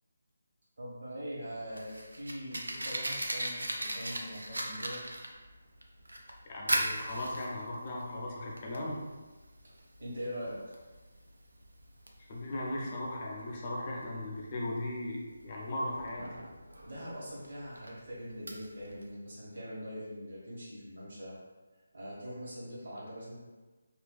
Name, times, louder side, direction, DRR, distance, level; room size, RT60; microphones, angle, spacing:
voice 1, 0.8-5.0 9.6-9.7 10.0-10.6 16.8-21.4 21.9-23.4, equal, 60° right, -7 dB, 1.1 m, -42 dB
Fire, 1.4-19.1, right 1 dB, 80° right, 0.3 m, -39 dB
voice 2, 6.5-9.0 12.3-16.3, left 1 dB, 35° left, -3 dB, 0.4 m, -37 dB
2.5 x 2.3 x 2.2 m, 1.2 s
figure-of-eight pair, 155°, 0 cm